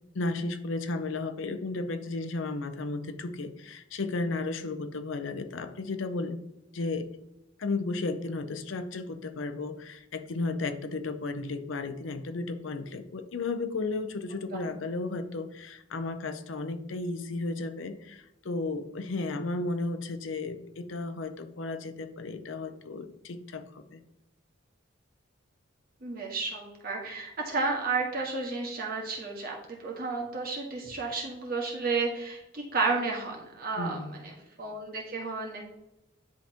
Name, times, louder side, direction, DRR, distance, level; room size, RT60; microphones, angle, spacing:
voice 1, 0.1-6.4 6.7-7.1 7.6-24.0 33.8-34.2, left 3 dB, 75° left, 9 dB, 0.6 m, -34 dB
voice 2, 26.0-35.7, right 4 dB, 45° right, -1 dB, 1.5 m, -32 dB
10.0 x 3.5 x 2.9 m, 0.89 s
head